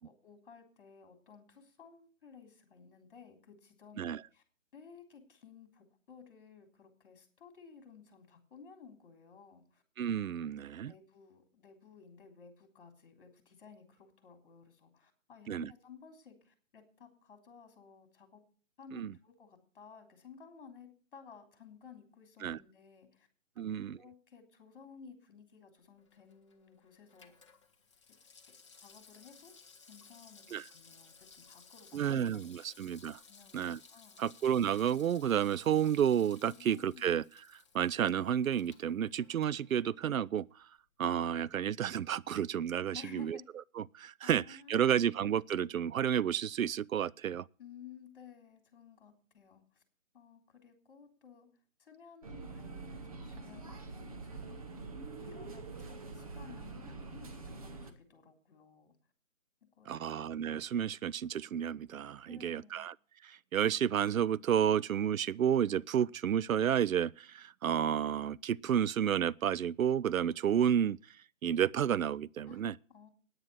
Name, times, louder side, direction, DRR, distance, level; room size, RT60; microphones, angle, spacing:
voice 1, 0.0-4.4 4.7-9.8 10.9-18.4 18.8-23.3 23.6-27.3 28.8-29.5 29.9-32.8 33.2-34.3 36.5-37.2 42.9-43.4 44.2-45.1 47.6-49.8 50.1-51.5 51.8-54.6 55.2-58.9 59.8-60.2 62.3-62.8 72.5-72.6 72.9-73.1, left 6 dB, 40° left, 3.4 m, -56 dB
voice 2, 10.0-10.9 15.5-15.7 18.9-19.1 22.4-22.6 23.6-24.0 30.5-30.6 31.9-33.2 33.5-33.8 34.2-37.2 37.5-40.5 41.0-43.4 43.8-47.5 59.9-62.9 63.2-71.0 71.4-72.8, right 9 dB, 85° right, 0.5 m, -31 dB
Water tap faucet / Sink (filling or washing), 26.0-40.3 40.6-40.7, left 5 dB, 20° left, 0.9 m, -59 dB
sound 1, 52.2-57.9, right 3 dB, 25° right, 1.0 m, -45 dB
9.6 x 9.0 x 7.9 m
figure-of-eight pair, 160°, 40 cm